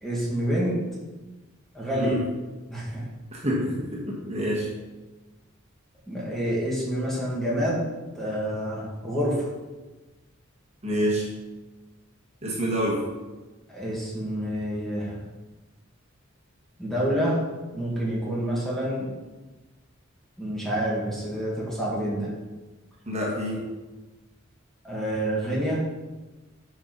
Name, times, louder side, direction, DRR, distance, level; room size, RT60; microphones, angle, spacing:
voice 1, 0.0-0.8 1.7-2.1 2.7-3.0 6.1-7.9 8.1-9.5 13.7-15.2 16.8-17.4 17.7-19.1 20.4-22.3 24.8-25.8, equal, ahead, -6 dB, 2.0 m, -27 dB
voice 2, 1.9-2.3 3.3-4.7 10.8-11.3 12.4-13.0 23.0-23.6, equal, 30° right, -4 dB, 1.6 m, -27 dB
10.0 x 4.7 x 4.0 m, 1.2 s
head